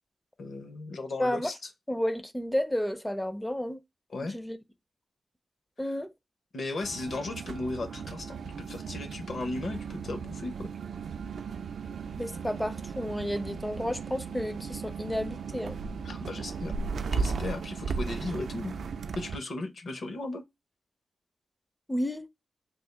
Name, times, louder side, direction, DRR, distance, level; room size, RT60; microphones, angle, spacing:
voice 1, 0.4-1.5 4.1-4.4 5.8-6.0 6.5-10.7 16.0-16.8 17.1-18.8 19.1-20.4, left 2 dB, 60° left, 0.8 m, -36 dB
voice 2, 1.2-1.5 1.9-3.8 4.3-4.6 5.8-6.1 12.2-15.8 21.9-22.3, left 1 dB, 10° left, 0.4 m, -31 dB
sound 1, 6.8-19.4, right 5 dB, 80° right, 0.4 m, -36 dB
3.5 x 2.4 x 3.1 m
wide cardioid pair, 130°, 0 cm